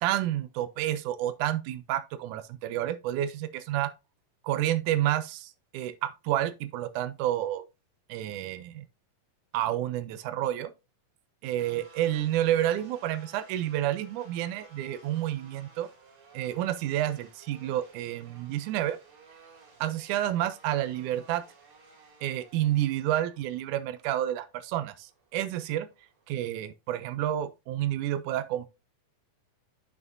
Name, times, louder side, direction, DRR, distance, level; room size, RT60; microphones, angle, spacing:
voice 1, 0.0-3.9 4.4-7.6 8.1-8.9 9.5-10.7 11.4-15.9 16.3-19.0 19.8-21.4 22.2-25.9 26.3-28.7, right 12 dB, 80° right, 1.9 m, -29 dB
sound 1, 11.6-26.4, right 4 dB, 55° right, 3.6 m, -56 dB
9.1 x 5.9 x 2.6 m
omnidirectional pair, 4.0 m